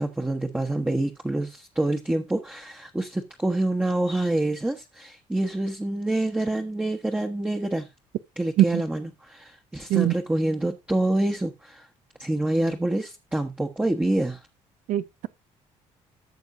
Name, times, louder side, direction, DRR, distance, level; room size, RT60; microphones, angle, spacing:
voice 1, 0.0-7.9 8.4-11.9 12.2-14.4, right 1 dB, 10° right, 1.1 m, -27 dB
voice 2, 14.9-15.3, right 14 dB, 75° right, 0.6 m, -22 dB
14.5 x 6.4 x 2.6 m
cardioid pair, 90°, 13 cm